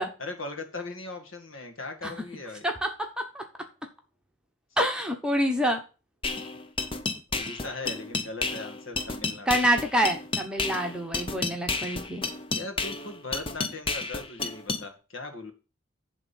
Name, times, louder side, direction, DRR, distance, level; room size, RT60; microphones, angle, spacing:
voice 1, 0.2-2.7 7.3-9.6 12.5-15.5, left 3 dB, 70° left, 5 dB, 1.9 m, -39 dB
voice 2, 2.6-3.4 4.8-5.8 9.5-12.2, equal, 5° right, 2 dB, 1.2 m, -27 dB
sound 1, 6.2-14.8, left 3 dB, 25° left, 0.7 m, -31 dB
10.5 x 3.8 x 7.1 m, 0.33 s
head